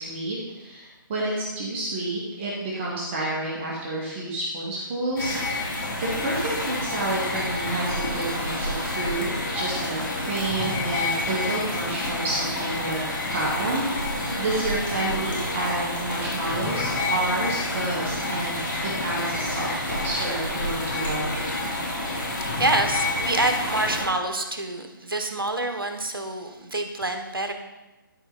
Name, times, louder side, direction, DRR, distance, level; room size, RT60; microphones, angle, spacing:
voice 1, 0.0-9.3 9.5-18.6 18.8-21.5, right 2 dB, 30° right, -5 dB, 2.1 m, -30 dB
sound 1, 5.2-24.0, left 2 dB, 60° left, 3.4 m, -28 dB
voice 2, 22.0-27.5, right 2 dB, 80° right, 6 dB, 1.2 m, -27 dB
13.0 x 4.8 x 4.2 m, 1.1 s
figure-of-eight pair, 140°, 12 cm